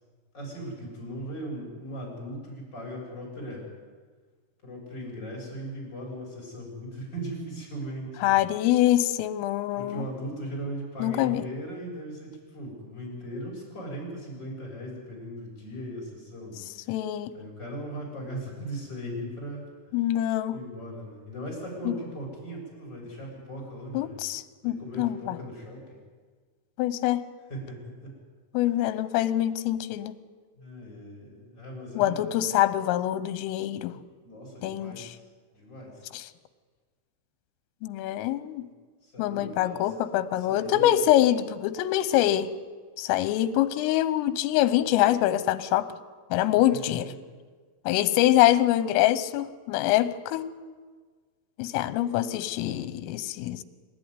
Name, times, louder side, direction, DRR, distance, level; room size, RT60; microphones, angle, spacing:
voice 1, 0.3-3.7 4.6-8.4 9.7-17.0 17.3-19.6 20.5-24.2 24.6-25.9 27.5-28.2 30.5-32.3 33.9-35.2 35.5-36.1 39.0-39.9 40.4-41.1 46.7-47.4, right 1 dB, 20° left, -3 dB, 7.5 m, -38 dB
voice 2, 8.2-10.0 11.0-11.4 16.9-17.3 19.9-20.6 21.9-22.0 24.0-25.4 26.8-27.3 28.6-30.1 32.0-33.9 34.6-35.1 36.1-36.3 37.8-38.7 39.2-42.5 43.0-45.9 46.3-47.1 47.9-50.5 51.6-53.6, left 13 dB, 85° left, 14 dB, 3.5 m, -25 dB
27.0 x 13.5 x 9.7 m, 1.5 s
omnidirectional pair, 5.8 m